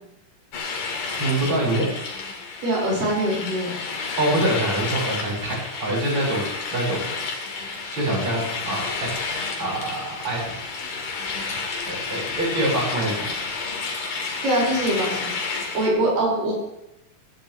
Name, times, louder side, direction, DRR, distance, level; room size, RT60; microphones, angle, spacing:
sound 1, 0.5-15.9, left 4 dB, 75° left, 3.7 m, -31 dB
voice 1, 1.1-1.9 4.2-6.4 6.7-7.0 7.5-9.1 9.6-10.4 11.4-11.5 11.8-13.2, right 1 dB, 35° right, -6 dB, 7.3 m, -25 dB
voice 2, 2.6-3.7 14.4-15.3 15.7-16.5, right 1 dB, 85° right, -5 dB, 7.1 m, -23 dB
18.0 x 16.0 x 3.2 m, 0.89 s
omnidirectional pair, 3.8 m